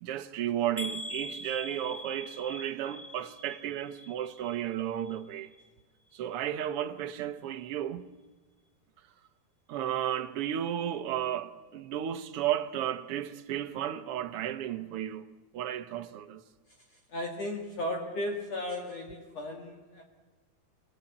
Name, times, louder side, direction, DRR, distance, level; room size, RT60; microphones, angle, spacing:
voice 1, 0.0-5.5 6.1-8.1 9.7-15.2 15.5-16.4, right 11 dB, 80° right, 1.2 m, -33 dB
sound 1, 0.8-4.7 5.0-5.7 6.1-6.2 6.6-6.7, left 1 dB, 10° left, 2.8 m, -43 dB
voice 2, 17.1-20.0, left 1 dB, 55° left, 3.0 m, -35 dB
27.0 x 20.0 x 8.6 m
omnidirectional pair, 3.8 m